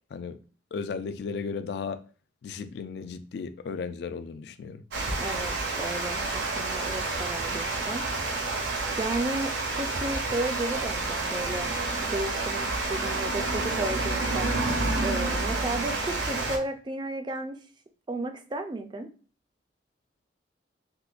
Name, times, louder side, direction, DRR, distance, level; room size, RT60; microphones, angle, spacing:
voice 1, 0.7-2.0 2.4-4.8, left 5 dB, 60° left, 0.3 m, -35 dB
Water, 4.9-16.6, right 3 dB, 70° right, 0.6 m, -29 dB
voice 2, 5.2-8.5 9.0-14.5 15.0-17.6 18.1-19.1, right 2 dB, 25° right, 0.3 m, -34 dB
3.6 x 2.8 x 2.4 m
head